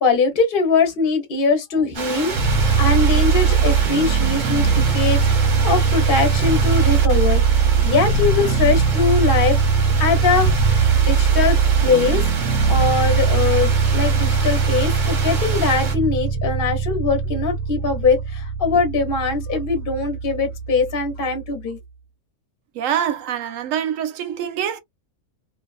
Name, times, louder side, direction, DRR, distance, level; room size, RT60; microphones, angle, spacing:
voice 1, 0.0-5.2 5.6-9.6 10.0-10.5 11.1-12.2 12.7-21.8, left 4 dB, 45° left, 0.8 m, -21 dB
sound 1, 1.9-16.0, right 4 dB, 45° right, 0.7 m, -30 dB
sound 2, 2.3-21.4, right 5 dB, 90° right, 1.2 m, -20 dB
voice 2, 22.7-24.8, right 9 dB, 70° right, 0.9 m, -25 dB
2.6 x 2.3 x 2.4 m
omnidirectional pair, 1.6 m